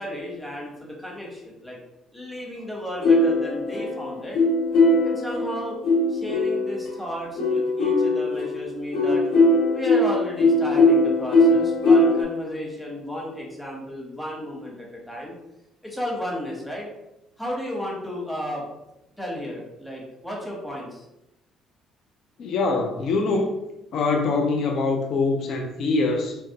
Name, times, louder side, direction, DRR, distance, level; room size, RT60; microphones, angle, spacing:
voice 1, 0.0-1.8 2.1-4.4 5.0-5.8 6.1-9.2 9.7-15.3 15.8-16.9 17.4-18.7 19.2-21.0, equal, ahead, -3 dB, 0.9 m, -33 dB
sound 1, 3.0-6.9 7.4-12.2, left 2 dB, 85° left, 1.4 m, -20 dB
voice 2, 22.4-23.5 23.9-26.4, left 3 dB, 60° left, 2 dB, 0.5 m, -23 dB
3.3 x 2.9 x 2.8 m, 0.90 s
cardioid pair, 115°, 0 cm